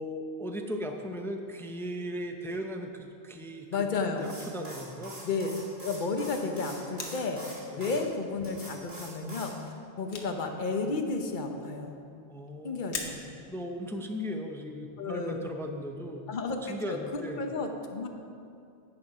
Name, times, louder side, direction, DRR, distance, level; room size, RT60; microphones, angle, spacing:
voice 1, 0.0-5.1 7.7-7.9 12.3-17.4, equal, 5° left, 4 dB, 0.4 m, -38 dB
voice 2, 3.7-4.3 5.2-5.5 5.8-7.4 7.8-11.9 12.6-13.2 15.0-15.5 16.3-16.6 16.9-17.0 17.3-18.1, left 4 dB, 50° left, 4 dB, 1.0 m, -32 dB
sound 1, 4.2-8.0 8.4-9.5, right 1 dB, 65° right, 3.1 m, -44 dB
sound 2, 7.0-7.5 8.3-8.4 9.0-9.1 9.2-9.3 9.6-10.6 10.9-11.0 12.3-12.5 12.9-13.5 14.0-14.1, left 4 dB, 85° left, 1.3 m, -40 dB
10.5 x 7.9 x 4.8 m, 2.5 s
omnidirectional pair, 1.1 m